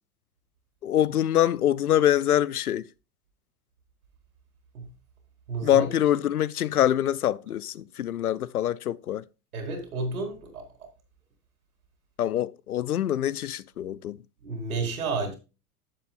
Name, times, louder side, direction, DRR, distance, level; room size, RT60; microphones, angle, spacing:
voice 1, 0.8-2.9 5.6-9.2 12.2-14.2, left 11 dB, 70° left, 0.7 m, -24 dB
voice 2, 5.5-5.9 9.5-10.6 14.4-15.3, right 3 dB, 65° right, 4.4 m, -31 dB
14.5 x 7.9 x 2.4 m
figure-of-eight pair, 90°, 46 cm